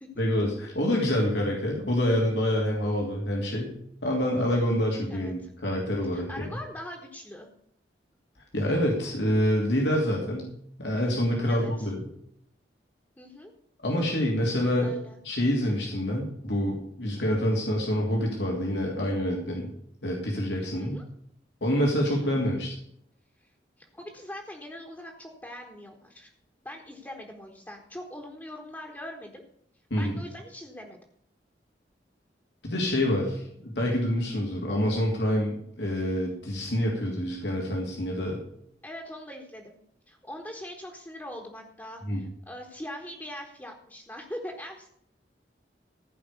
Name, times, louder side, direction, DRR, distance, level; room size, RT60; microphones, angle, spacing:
voice 1, 0.2-3.7 4.0-6.5 8.5-10.5 10.8-12.1 13.8-14.9 15.2-19.7 20.0-21.0 21.6-22.7 29.9-30.2 32.6-38.4 42.0-42.2, equal, 85° left, -1 dB, 2.8 m, -27 dB
voice 2, 5.1-5.5 6.1-7.5 11.5-11.9 13.2-13.5 14.8-15.2 20.8-21.0 22.2-22.3 23.8-26.3 26.6-29.4 30.0-31.0 38.8-39.8 40.1-44.9, left 1 dB, 10° left, 0 dB, 1.4 m, -42 dB
15.0 x 5.2 x 8.2 m, 0.69 s
head